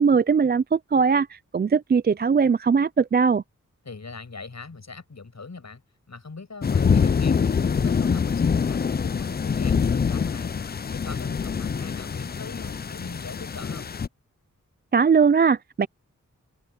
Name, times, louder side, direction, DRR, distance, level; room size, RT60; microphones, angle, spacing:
voice 1, 0.0-3.4 14.9-15.9, right 5 dB, 35° right, 0.4 m, -20 dB
voice 2, 3.8-5.8 6.1-13.9, left 4 dB, 60° left, 7.1 m, -41 dB
sound 1, 6.6-14.1, left 6 dB, 30° left, 0.4 m, -24 dB
wide cardioid pair, 70°, 31 cm